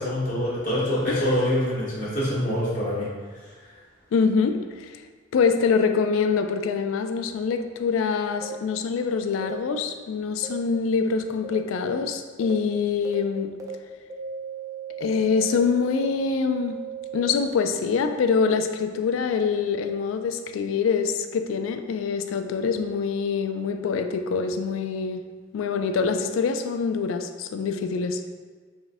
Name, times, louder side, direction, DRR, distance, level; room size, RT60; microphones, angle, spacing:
voice 1, 0.0-3.1, left 1 dB, 40° left, -9 dB, 1.2 m, -25 dB
voice 2, 4.1-4.9 5.3-13.5 15.0-16.8 17.1-25.2 25.5-28.2, left 5 dB, 80° left, 7 dB, 0.3 m, -25 dB
sound 1, 8.4-8.5 9.4-9.5 10.4-10.5 11.4-11.5 12.4-12.5 13.0-13.1 13.6-13.7 14.1-17.3, right 7 dB, 15° right, 0.4 m, -36 dB
4.8 x 2.5 x 2.6 m, 1.5 s
head